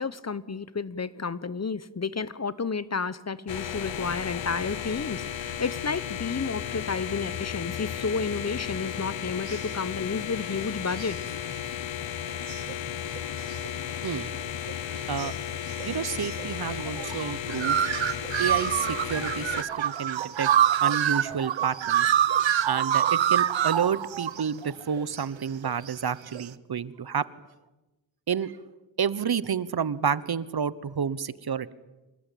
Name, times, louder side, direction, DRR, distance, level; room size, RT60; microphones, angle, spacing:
voice 1, 0.0-11.2, left 4 dB, 35° left, 18 dB, 1.1 m, -31 dB
sound 1, 3.5-19.6, left 9 dB, 85° left, 1.2 m, -34 dB
sound 2, 9.5-9.6 11.0-11.1 12.3-12.7 13.2-14.4 14.7-15.5 15.8-15.9 16.2-16.5 16.7-24.7 25.0-25.4 25.6-26.1 26.3-26.5, right 10 dB, 80° right, 1.0 m, -26 dB
voice 2, 15.8-17.8 18.4-22.1 22.7-27.3 28.3-28.5 29.0-31.7, right 7 dB, 55° right, 18 dB, 1.1 m, -30 dB
26.5 x 20.0 x 9.2 m, 1.1 s
cardioid pair, 70°, 44 cm